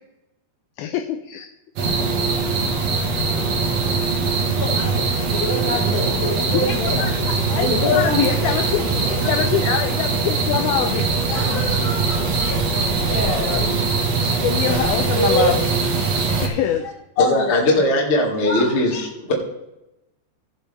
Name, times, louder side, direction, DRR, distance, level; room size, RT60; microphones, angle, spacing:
voice 1, 0.8-1.5 5.3-5.4 5.7-5.8 6.5-7.2 7.5-11.1 13.4-13.9 14.4-15.6 16.4-16.9, left 10 dB, 80° left, 6 dB, 2.2 m, -24 dB
sound 1, 1.8-16.5, right 4 dB, 55° right, 1.9 m, -21 dB
voice 2, 4.6-7.0 7.5-8.5 9.1-9.3 9.6-9.7 11.3-12.7 13.0-13.8 14.2-14.5 15.1-15.5 16.3-16.9 17.2-17.8 18.4-18.7, left 1 dB, 50° left, -4 dB, 4.5 m, -26 dB
voice 3, 17.2-19.3, left 1 dB, 30° left, -3 dB, 1.3 m, -19 dB
16.5 x 6.7 x 3.4 m, 0.93 s
omnidirectional pair, 4.7 m